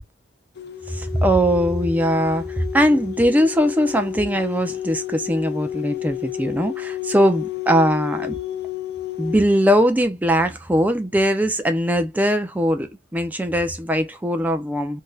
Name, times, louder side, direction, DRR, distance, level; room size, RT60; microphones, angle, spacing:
sound 1, 0.6-9.6, left 11 dB, 55° left, 0.5 m, -31 dB
voice 1, 0.9-8.4 9.2-15.0, equal, 10° right, 0.5 m, -20 dB
3.3 x 2.7 x 2.3 m
head